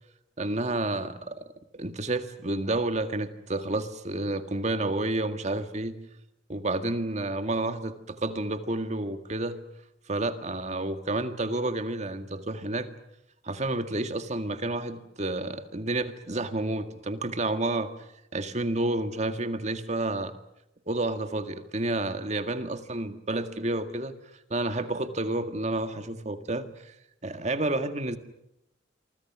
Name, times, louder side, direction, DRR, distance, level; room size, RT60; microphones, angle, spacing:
voice 1, 0.4-1.4 1.7-6.0 6.5-9.6 10.1-12.9 13.4-17.9 18.3-20.3 20.9-24.1 24.5-26.9 27.2-28.2, right 2 dB, 35° right, 9 dB, 1.9 m, -30 dB
28.0 x 24.5 x 6.1 m, 0.83 s
head